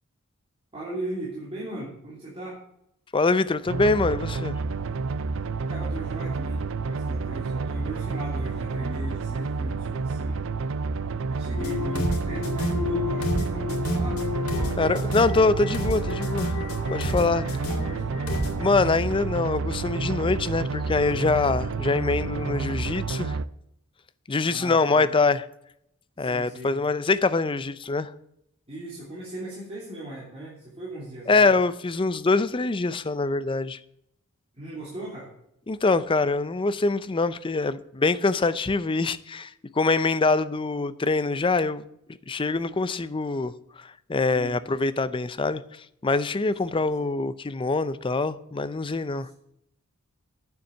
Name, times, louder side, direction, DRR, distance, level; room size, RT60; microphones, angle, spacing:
voice 1, 0.7-2.6 5.7-10.4 11.2-14.8 17.4-18.4 24.4-25.2 26.2-26.8 28.7-31.5 34.5-35.3 44.3-44.7 46.7-47.1 49.2-49.3, right 1 dB, 30° right, 3.0 m, -38 dB
voice 2, 3.1-4.6 14.8-16.5 16.9-17.4 18.6-23.4 24.3-25.4 26.2-28.1 31.3-33.8 35.7-41.8 42.3-43.5 43.8-45.6 46.0-49.3, left 3 dB, 25° left, 0.5 m, -24 dB
sound 1, 3.7-23.5, right 4 dB, 65° right, 0.5 m, -29 dB
sound 2, 11.5-18.7, left 2 dB, 85° left, 2.5 m, -30 dB
9.3 x 7.1 x 7.3 m
head